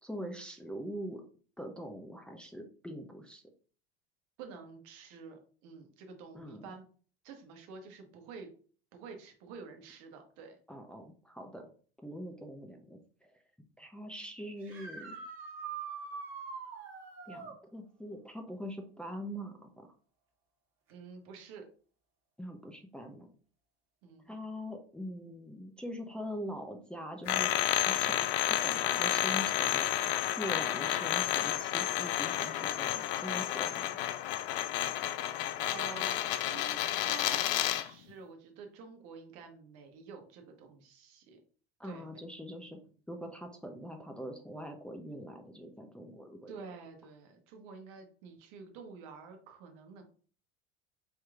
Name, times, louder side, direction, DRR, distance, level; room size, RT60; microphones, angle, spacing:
voice 1, 0.0-1.2 1.6-3.4 6.3-6.7 10.7-11.7 12.0-13.0 13.3-13.4 13.8-15.2 17.3-19.9 22.4-23.3 24.3-27.5 27.8-29.9 30.4-34.0 41.8-42.8 43.1-46.5, equal, 5° left, 3 dB, 0.6 m, -43 dB
voice 2, 4.4-6.8 7.2-8.5 8.9-10.6 20.9-21.7 24.0-24.4 35.6-41.4 41.8-42.2 46.5-50.0, right 5 dB, 65° right, 4 dB, 1.1 m, -49 dB
sound 1, 14.6-17.6 20.9-21.0 23.0-23.1 29.4-29.5, right 5 dB, 45° right, 1.3 m, -43 dB
sound 2, 27.3-37.9, left 12 dB, 65° left, 0.5 m, -31 dB
4.7 x 3.0 x 2.4 m, 0.42 s
hypercardioid pair, 80°, 30 cm